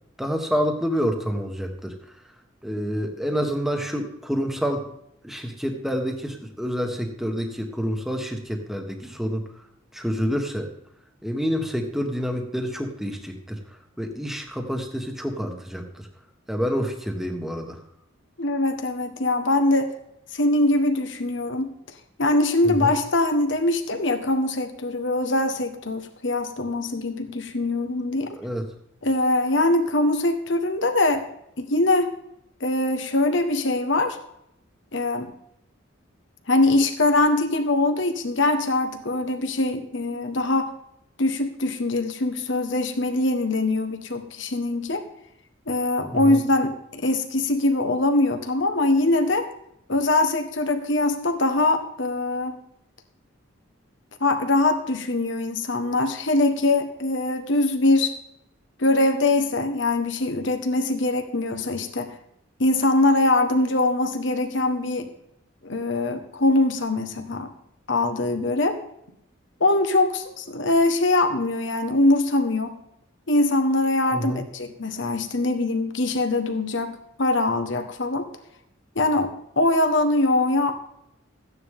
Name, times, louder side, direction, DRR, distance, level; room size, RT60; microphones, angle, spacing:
voice 1, 0.2-1.9 2.6-4.8 5.2-9.4 9.9-10.7 11.2-13.6 14.0-16.0 16.5-17.8 22.6-22.9 28.4-28.6 46.0-46.4 74.1-74.4, equal, ahead, 3 dB, 1.5 m, -28 dB
voice 2, 18.4-19.9 20.3-21.7 22.2-28.4 29.0-31.2 31.6-32.1 32.6-34.2 34.9-35.3 36.5-40.7 41.2-45.0 45.7-49.5 49.9-52.6 54.2-58.1 58.8-62.1 62.6-65.1 65.6-67.5 67.9-68.8 69.6-72.8 73.3-78.3 78.9-79.3 79.6-80.7, left 2 dB, 65° left, 7 dB, 1.5 m, -22 dB
14.5 x 9.9 x 3.7 m, 0.76 s
head